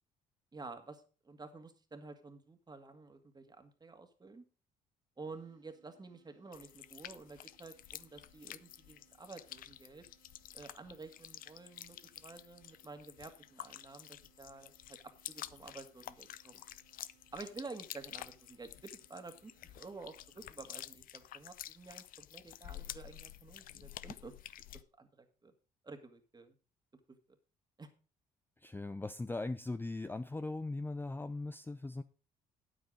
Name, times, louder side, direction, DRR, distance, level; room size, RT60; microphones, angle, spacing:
voice 1, 0.5-4.4 5.2-10.0 10.5-16.6 17.3-24.3 24.7-25.5 25.8-26.6 27.1-27.2 27.8-27.9, right 3 dB, 25° right, 2.0 m, -51 dB
sound 1, 5.2-20.4, right 13 dB, 85° right, 2.5 m, -72 dB
sound 2, 6.5-24.8, left 12 dB, 60° left, 0.5 m, -50 dB
voice 2, 28.6-32.0, left 2 dB, 15° left, 0.5 m, -39 dB
9.1 x 8.0 x 4.9 m
hypercardioid pair, 60°, 16 cm